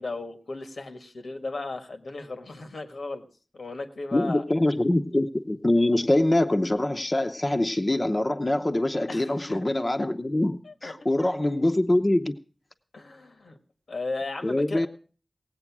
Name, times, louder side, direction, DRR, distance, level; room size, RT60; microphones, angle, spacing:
voice 1, 0.0-3.3 3.5-4.4 9.1-9.6 10.6-10.9 11.2-11.3 12.9-13.6 13.9-14.9, left 3 dB, 90° left, 1.7 m, -35 dB
voice 2, 4.1-12.3 14.4-14.9, left 1 dB, 35° left, 0.8 m, -24 dB
18.0 x 8.1 x 6.1 m
wide cardioid pair, 55°, 0 cm